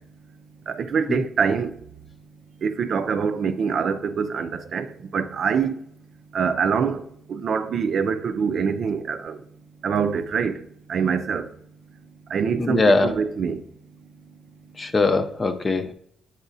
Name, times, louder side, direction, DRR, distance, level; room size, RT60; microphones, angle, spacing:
voice 1, 0.7-1.7 2.6-4.9 5.1-5.7 6.3-7.0 7.3-9.4 9.8-10.6 10.9-11.5 12.3-13.6, right 6 dB, 55° right, 0.4 m, -24 dB
voice 2, 12.6-13.1 14.8-15.9, left 3 dB, 30° left, 0.6 m, -21 dB
8.2 x 4.8 x 2.7 m
cardioid pair, 90°, 0 cm